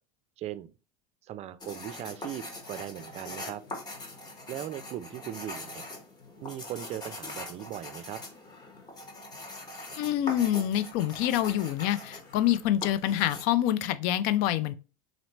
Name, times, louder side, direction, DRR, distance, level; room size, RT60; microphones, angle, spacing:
voice 1, 0.4-0.7 1.2-3.6 4.5-5.8 6.4-8.2, right 12 dB, 35° right, 0.4 m, -39 dB
sound 1, 1.6-13.4, left 2 dB, 25° left, 1.1 m, -42 dB
voice 2, 10.0-14.7, left 12 dB, 55° left, 0.4 m, -26 dB
4.0 x 3.1 x 2.9 m
hypercardioid pair, 105°, 18 cm